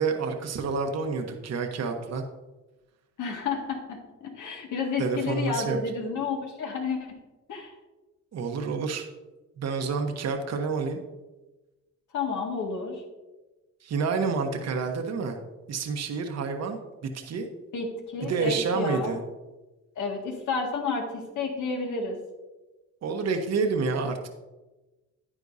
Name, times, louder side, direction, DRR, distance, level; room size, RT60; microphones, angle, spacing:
voice 1, 0.0-2.2 5.0-5.8 8.3-9.1 9.6-11.0 13.8-15.4 15.7-17.5 18.2-19.2 23.0-24.3, right 4 dB, 60° right, 4 dB, 1.1 m, -29 dB
voice 2, 3.2-7.2 7.5-7.7 12.1-13.0 17.7-19.2 20.0-22.2, left 4 dB, 75° left, 1 dB, 2.1 m, -31 dB
9.9 x 9.8 x 2.7 m, 1.1 s
cardioid pair, 90°, 30 cm